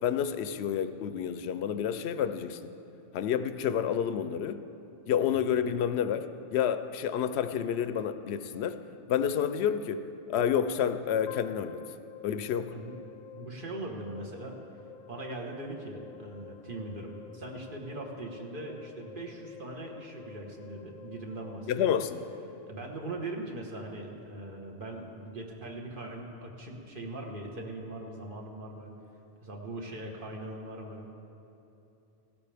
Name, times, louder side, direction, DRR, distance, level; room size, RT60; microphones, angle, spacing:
voice 1, 0.0-2.6 3.1-4.6 5.1-8.8 9.1-11.8 12.2-12.7 21.7-22.2, left 8 dB, 75° left, 10 dB, 0.8 m, -29 dB
sound 1, 11.3-23.5, left 8 dB, 60° left, 0.5 m, -50 dB
voice 2, 13.4-14.6 15.1-22.0 22.7-28.9 29.4-31.1, right 2 dB, 50° right, 0 dB, 1.6 m, -40 dB
17.0 x 13.0 x 3.5 m, 2.9 s
omnidirectional pair, 1.1 m